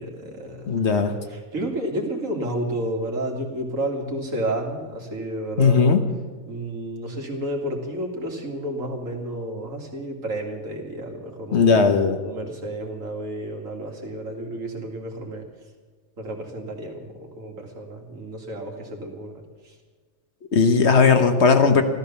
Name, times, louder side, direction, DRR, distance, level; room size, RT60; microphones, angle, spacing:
voice 1, 0.0-0.8 1.3-6.0 6.5-11.7 12.2-15.5 16.2-19.8, right 1 dB, 75° right, 1 dB, 2.6 m, -31 dB
voice 2, 0.7-1.1 5.6-6.0 11.5-12.2 20.5-21.8, left 5 dB, 55° left, 7 dB, 1.3 m, -17 dB
14.0 x 13.5 x 7.0 m, 1.4 s
omnidirectional pair, 1.4 m